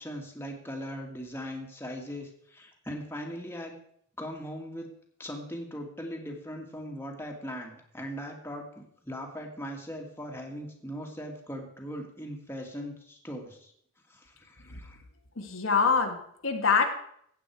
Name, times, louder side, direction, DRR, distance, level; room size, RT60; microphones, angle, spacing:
voice 1, 0.0-3.7 4.2-4.9 5.2-13.7 14.1-15.0, equal, 10° left, 1 dB, 2.0 m, -39 dB
voice 2, 15.4-16.8, left 5 dB, 80° left, 4 dB, 1.7 m, -25 dB
15.5 x 8.7 x 4.7 m, 0.67 s
head